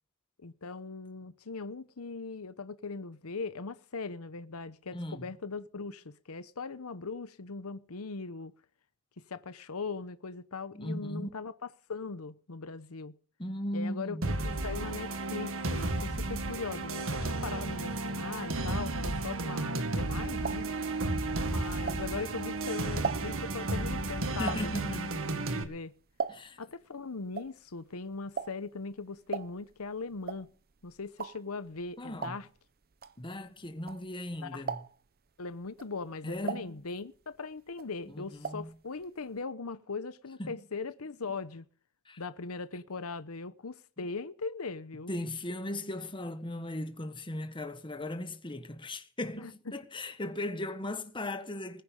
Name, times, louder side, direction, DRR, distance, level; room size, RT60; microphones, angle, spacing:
voice 1, 0.4-8.5 9.3-11.5 11.9-13.1 13.7-20.7 21.5-25.9 26.6-30.5 30.8-32.5 34.4-34.6 35.4-41.7 42.2-45.1 49.4-49.7, left 4 dB, 75° left, 0.9 m, -40 dB
voice 2, 4.9-5.2 10.7-11.3 13.4-14.3 24.4-25.0 26.3-26.6 32.0-32.4 33.2-34.8 36.2-36.8 38.1-38.7 40.4-40.6 42.1-42.2 45.1-51.8, left 1 dB, 25° left, 1.5 m, -37 dB
sound 1, 14.2-25.6, right 2 dB, 65° right, 1.9 m, -33 dB
sound 2, 20.4-22.4 22.8-26.7 27.0-34.3 34.6-35.2 35.7-37.4 37.7-38.8 39.0-39.1 39.4-39.5, right 6 dB, 45° right, 0.8 m, -39 dB
20.0 x 10.0 x 5.4 m
head